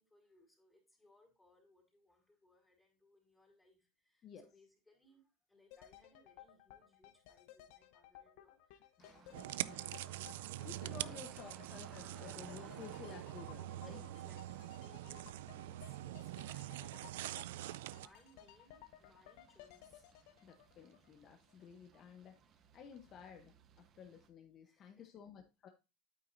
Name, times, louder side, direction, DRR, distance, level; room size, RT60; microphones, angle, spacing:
voice 1, 0.0-10.1 11.0-11.3 13.9-20.1 24.6-25.1, left 1 dB, 10° left, -1 dB, 4.0 m, -68 dB
sound 1, 5.7-21.6 21.9-22.0, left 12 dB, 70° left, 0.8 m, -59 dB
voice 2, 9.0-9.8 10.6-14.1 20.4-22.4 22.7-25.7, left 7 dB, 40° left, 5 dB, 1.0 m, -54 dB
sound 2, 9.0-24.3, right 7 dB, 40° right, 1.1 m, -62 dB
sound 3, 9.3-18.1, right 14 dB, 90° right, 0.3 m, -44 dB
8.9 x 8.8 x 2.6 m, 0.28 s
supercardioid pair, 135°, 0 cm